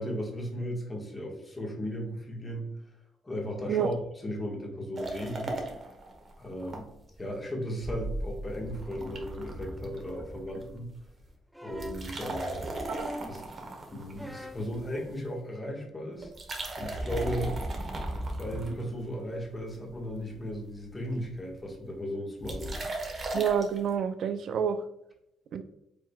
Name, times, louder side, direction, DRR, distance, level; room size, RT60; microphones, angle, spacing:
voice 1, 0.0-2.7 3.2-5.6 6.4-6.9 7.2-10.9 11.6-12.7 13.3-13.4 13.9-16.3 16.8-17.5 18.4-22.7, equal, 20° left, -1 dB, 1.4 m, -36 dB
pouring can, 5.0-6.8 7.1-7.2 7.8-10.7 11.0-11.3 11.7-15.0 16.2-19.2 19.7-20.2 20.5-20.6 20.8-21.4 22.4-23.8, right 1 dB, 45° right, 1.0 m, -36 dB
Low tritone slide down, 11.5-12.1 12.9-13.4 14.2-14.7 15.9-16.0, equal, 5° right, 0.5 m, -42 dB
voice 2, 23.3-24.8 25.5-25.6, right 8 dB, 65° right, 10 dB, 0.3 m, -28 dB
4.9 x 3.7 x 2.3 m, 0.81 s
cardioid pair, 90°, 0 cm